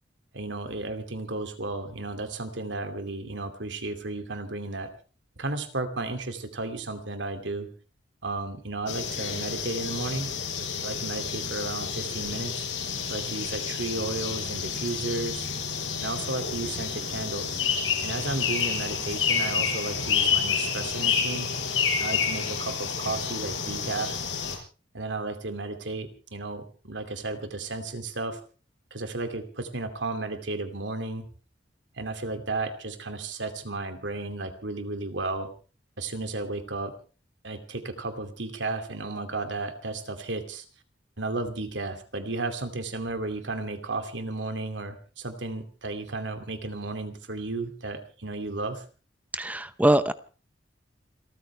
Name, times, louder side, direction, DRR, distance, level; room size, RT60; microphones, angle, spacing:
voice 1, 0.3-4.9 5.4-7.7 8.2-10.3 10.8-12.7 13.1-15.5 16.0-17.6 18.0-21.5 22.0-24.2 24.9-28.4 28.9-31.3 32.0-35.5 36.0-36.9 37.4-40.6 41.2-48.8, right 2 dB, 75° right, 2.6 m, -33 dB
sound 1, 8.9-24.6, left 6 dB, 85° left, 6.6 m, -29 dB
voice 2, 49.3-50.1, right 1 dB, 10° right, 0.7 m, -22 dB
28.5 x 13.5 x 3.4 m
head